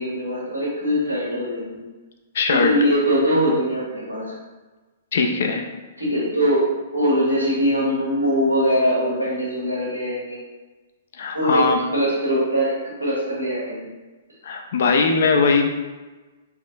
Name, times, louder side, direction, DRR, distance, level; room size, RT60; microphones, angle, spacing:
voice 1, 0.0-1.9 2.5-4.4 6.0-6.6 6.9-10.4 11.3-11.6 11.9-13.9, equal, 90° right, -7 dB, 1.4 m, -22 dB
voice 2, 2.3-2.7 5.1-5.6 11.1-11.8 14.4-15.6, left 4 dB, 55° left, 3 dB, 0.5 m, -20 dB
3.9 x 3.5 x 2.3 m, 1.2 s
figure-of-eight pair, 115°, 0 cm